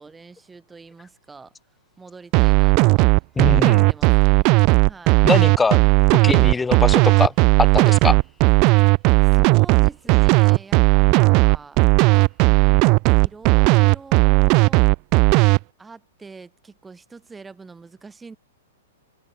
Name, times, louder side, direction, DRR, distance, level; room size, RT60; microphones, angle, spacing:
voice 1, 0.0-1.5 2.0-3.1 3.5-4.5 4.8-5.3 9.1-11.8 13.1-14.8 15.8-18.4, right 4 dB, 10° right, 6.3 m, -44 dB
sound 1, 2.3-15.6, right 27 dB, 40° right, 0.6 m, -15 dB
voice 2, 3.4-3.9 5.2-5.8 6.1-7.3 7.6-8.2, left 4 dB, 10° left, 2.2 m, -22 dB
figure-of-eight pair, 110°, 0 cm